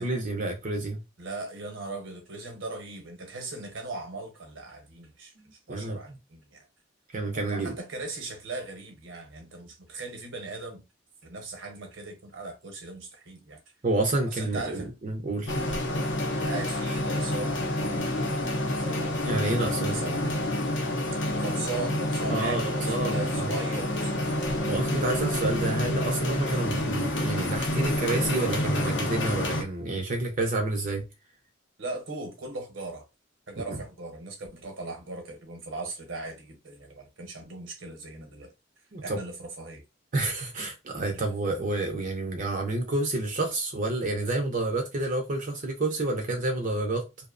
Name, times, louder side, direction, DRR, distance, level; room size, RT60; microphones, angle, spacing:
voice 1, 0.0-1.0 5.7-6.0 7.1-7.8 13.8-15.5 19.2-20.0 22.3-23.5 24.7-31.0 33.7-33.8 38.9-39.2 40.1-47.0, right 2 dB, 40° right, 0.5 m, -29 dB
voice 2, 1.2-6.7 7.3-10.8 11.2-13.6 14.2-15.0 16.0-19.2 19.9-20.4 21.3-24.8 31.8-33.1 33.5-38.5 39.0-39.8, right 3 dB, 75° right, 0.8 m, -39 dB
sound 1, 15.5-29.6, left 1 dB, 65° left, 0.6 m, -28 dB
2.6 x 2.0 x 2.4 m
head